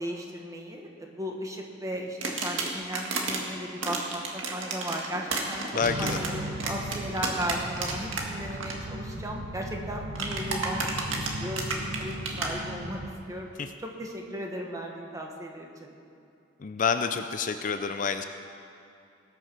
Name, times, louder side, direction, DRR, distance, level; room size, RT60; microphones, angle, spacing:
voice 1, 0.0-10.9 11.2-13.0 13.3-15.9, equal, 15° right, 1 dB, 1.4 m, -36 dB
sound 1, 2.2-3.4 3.8-8.2 8.5-8.7 10.1-12.5, right 4 dB, 80° right, 1.7 m, -31 dB
voice 2, 5.7-6.2 16.6-18.2, left 5 dB, 40° left, 8 dB, 0.5 m, -28 dB
sound 2, 5.8-13.1, right 1 dB, 55° right, 1.1 m, -37 dB
19.0 x 6.8 x 6.1 m, 2.6 s
head